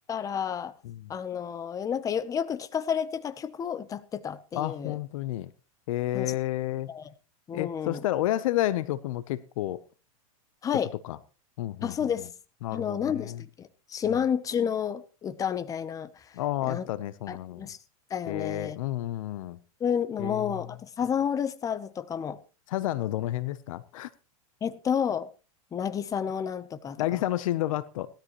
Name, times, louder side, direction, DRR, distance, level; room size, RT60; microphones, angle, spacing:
voice 1, 0.1-0.7 1.1-5.0 6.1-6.4 6.9-7.1 7.5-8.0 10.6-10.9 11.8-12.3 12.7-16.4 16.7-16.9 17.3-17.8 18.1-18.8 19.8-22.4 24.6-25.3 25.7-27.2, left 8 dB, 20° left, 0.8 m, -30 dB
voice 2, 4.5-5.5 5.9-6.9 7.5-9.8 11.0-11.2 11.6-11.9 12.6-13.4 14.1-14.2 16.3-17.7 18.3-19.6 20.2-20.6 22.7-24.1 27.0-28.1, left 14 dB, 65° left, 0.8 m, -30 dB
17.5 x 13.0 x 3.1 m
supercardioid pair, 135°, 18 cm